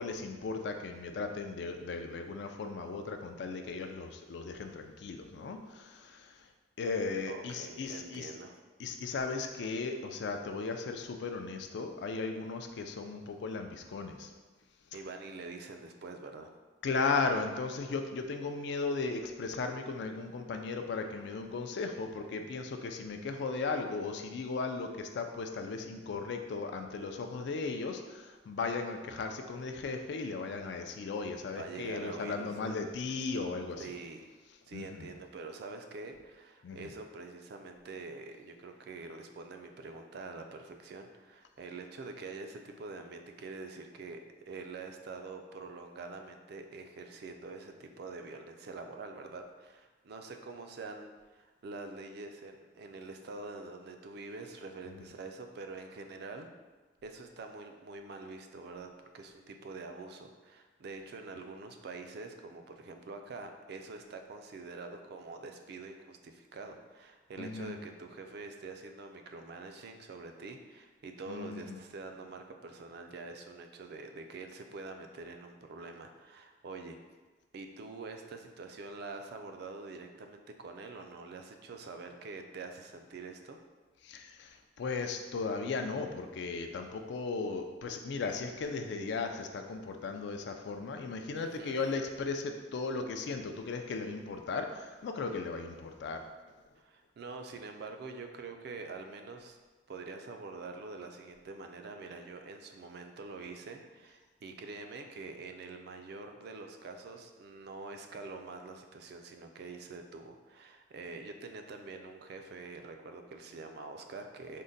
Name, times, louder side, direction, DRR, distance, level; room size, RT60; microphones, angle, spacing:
voice 1, 0.0-6.3 6.8-8.3 8.8-14.3 16.8-33.8 34.7-35.1 36.6-36.9 67.4-67.7 71.3-71.8 84.0-96.2, left 4 dB, 70° left, 5 dB, 0.3 m, -36 dB
voice 2, 7.3-8.6 14.9-16.5 31.5-32.8 33.8-34.3 34.7-56.5 57.0-77.0 77.5-83.6 91.4-91.8 95.3-95.4 96.8-99.6 99.9-114.6, right 3 dB, 60° right, 5 dB, 0.4 m, -45 dB
3.7 x 2.1 x 3.9 m, 1.3 s
head